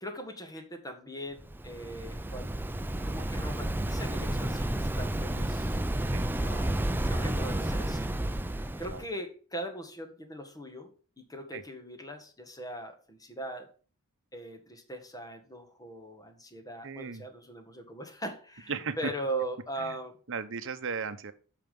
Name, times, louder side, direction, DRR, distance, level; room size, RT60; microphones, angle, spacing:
voice 1, 0.0-2.6 3.0-5.8 6.4-6.8 7.1-8.1 8.8-13.7 14.3-20.2, right 1 dB, 15° left, 6 dB, 1.7 m, -40 dB
Waves surf, 1.4-9.0, right 1 dB, 10° right, 0.5 m, -31 dB
voice 2, 16.8-17.2 18.7-19.1 19.8-19.9 20.3-21.3, right 5 dB, 60° right, 10 dB, 0.9 m, -36 dB
8.9 x 5.9 x 5.3 m, 0.38 s
head